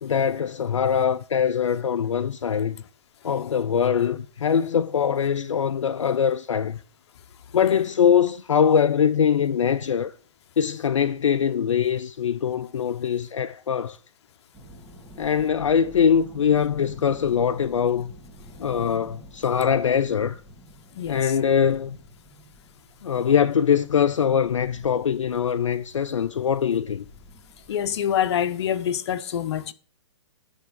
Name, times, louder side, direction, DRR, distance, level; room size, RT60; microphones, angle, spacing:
voice 1, 0.0-2.8 3.2-6.8 7.5-10.1 10.6-14.0 15.2-18.1 18.6-20.4 21.1-22.0 23.0-27.0, left 7 dB, 80° left, 0.5 m, -22 dB
sound 1, 14.5-28.0, equal, 15° right, 2.5 m, -48 dB
voice 2, 21.0-21.4 27.7-29.7, left 9 dB, 60° left, 0.8 m, -26 dB
10.5 x 3.6 x 7.3 m
hypercardioid pair, 120°, 16 cm